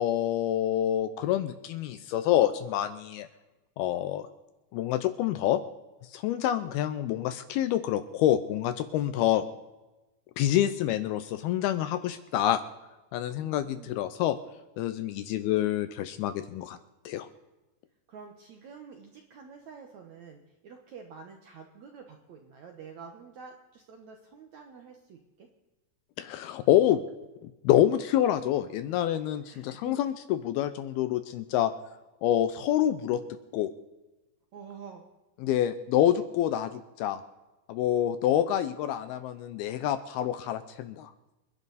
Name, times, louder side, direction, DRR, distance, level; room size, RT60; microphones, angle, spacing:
voice 1, 0.0-3.3 3.8-4.3 4.7-5.6 6.1-9.4 10.4-12.6 13.1-14.4 14.8-16.8 17.1-17.3 26.2-27.0 27.6-31.7 32.2-33.2 33.5-33.7 35.4-37.2 37.7-41.1, left 12 dB, 80° left, 12 dB, 2.3 m, -27 dB
voice 2, 13.3-14.0 18.1-25.5 29.4-30.0 34.5-35.0, right 6 dB, 80° right, 3 dB, 1.6 m, -48 dB
27.5 x 11.0 x 4.1 m, 1.1 s
omnidirectional pair, 5.1 m